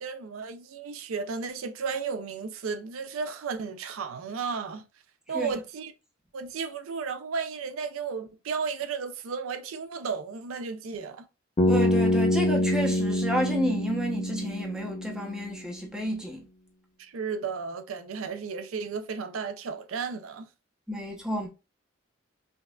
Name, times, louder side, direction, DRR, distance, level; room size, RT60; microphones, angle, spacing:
voice 1, 0.0-4.8 5.3-5.9 6.3-11.3 17.0-20.5, right 5 dB, 80° right, 0.5 m, -34 dB
Bass guitar, 11.6-15.7, left 1 dB, 30° left, 0.5 m, -26 dB
voice 2, 11.7-16.4 20.9-21.5, equal, 5° right, 0.7 m, -30 dB
5.1 x 2.4 x 2.3 m
head